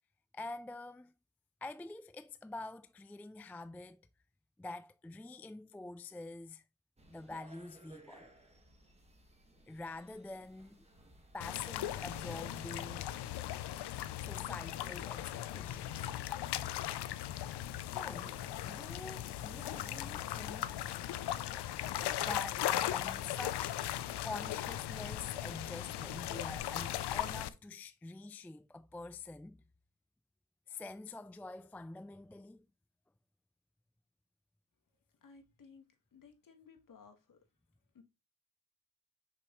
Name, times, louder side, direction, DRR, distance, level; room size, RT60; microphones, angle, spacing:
voice 1, 0.3-1.1 1.6-4.1 4.6-6.6 7.1-8.3 9.7-10.8 11.3-13.1 14.2-16.1 17.9-20.8 22.2-29.6 30.7-32.7, left 2 dB, 5° left, 0.3 m, -46 dB
sound 1, 7.0-23.6, right 1 dB, 15° right, 1.7 m, -61 dB
sound 2, 11.4-27.5, left 12 dB, 80° left, 0.6 m, -38 dB
voice 2, 35.2-35.9 36.1-37.4 37.9-38.0, left 5 dB, 55° left, 1.8 m, -58 dB
6.1 x 5.9 x 3.1 m
cardioid pair, 90°, 39 cm